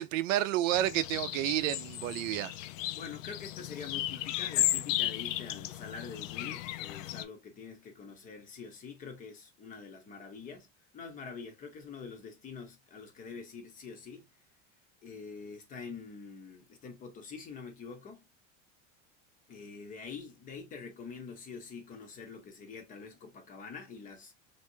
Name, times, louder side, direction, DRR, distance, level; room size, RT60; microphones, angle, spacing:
voice 1, 0.0-2.5, right 13 dB, 90° right, 0.6 m, -30 dB
sound 1, 0.7-7.2, left 15 dB, 80° left, 0.5 m, -35 dB
voice 2, 2.9-10.7 10.9-14.3 15.0-18.3 19.5-24.3, left 5 dB, 20° left, 0.6 m, -45 dB
3.3 x 2.7 x 2.7 m
supercardioid pair, 165°, 38 cm